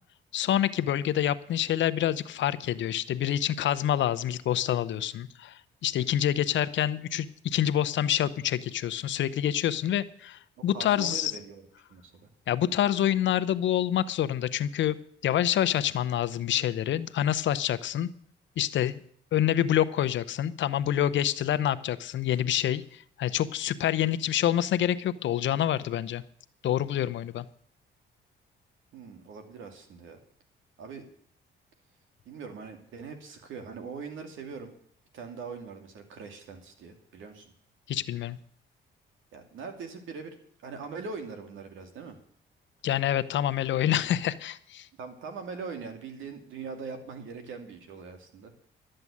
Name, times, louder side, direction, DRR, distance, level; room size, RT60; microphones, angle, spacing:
voice 1, 0.3-11.3 12.5-15.0 15.2-18.1 18.6-19.0 19.3-26.2 26.6-27.4 37.9-38.4 42.8-44.9, left 11 dB, 70° left, 14 dB, 0.8 m, -27 dB
voice 2, 10.6-11.6 11.9-12.3 28.9-30.2 30.8-31.1 32.2-34.7 35.1-37.5 39.3-42.2 45.0-48.5, right 5 dB, 80° right, 6 dB, 2.4 m, -41 dB
12.5 x 7.8 x 8.5 m, 0.63 s
cardioid pair, 90°, 20 cm